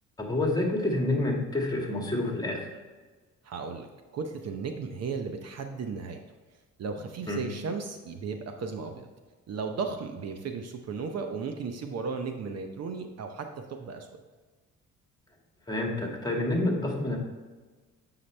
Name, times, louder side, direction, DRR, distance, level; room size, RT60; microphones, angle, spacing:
voice 1, 0.2-2.7 7.3-7.5 15.7-17.2, left 2 dB, 15° left, 0 dB, 1.8 m, -28 dB
voice 2, 3.4-3.9 4.1-6.2 6.8-9.1 9.5-14.1, right 5 dB, 55° right, 5 dB, 0.8 m, -35 dB
7.9 x 5.8 x 3.3 m, 1.3 s
cardioid pair, 90°, 30 cm